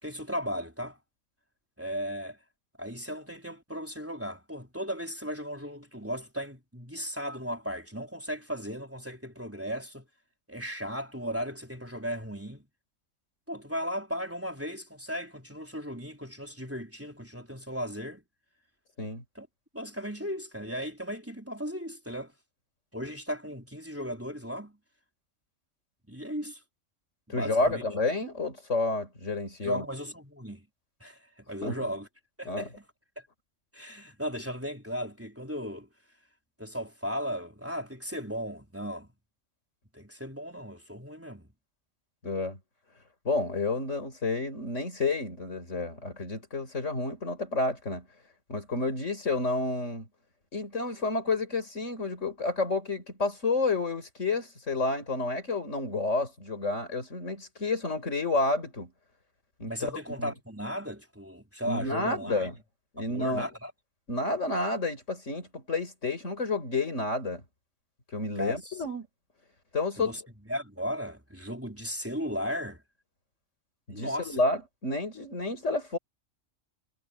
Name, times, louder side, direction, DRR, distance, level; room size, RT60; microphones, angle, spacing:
voice 1, 0.0-1.0 1.8-2.4 2.8-10.1 10.5-12.6 13.5-18.2 19.4-19.5 19.7-22.3 22.9-24.8 26.1-26.6 27.3-27.8 29.6-30.7 31.0-32.1 32.4-32.8 33.2-33.3 33.7-35.9 36.6-39.1 39.9-41.5 59.7-62.5 63.0-63.7 68.4-68.8 70.0-70.2 70.5-72.8 73.9-74.4, equal, 10° right, 4.0 m, -36 dB
voice 2, 27.3-29.8 31.6-31.8 32.5-32.7 42.2-42.6 43.2-48.1 48.5-50.1 50.5-58.9 59.6-59.9 60.2-60.3 61.6-62.5 62.9-63.5 64.1-67.4 68.1-69.1 69.7-70.1 73.9-76.0, left 3 dB, 90° left, 4.8 m, -30 dB
omnidirectional pair, 1.2 m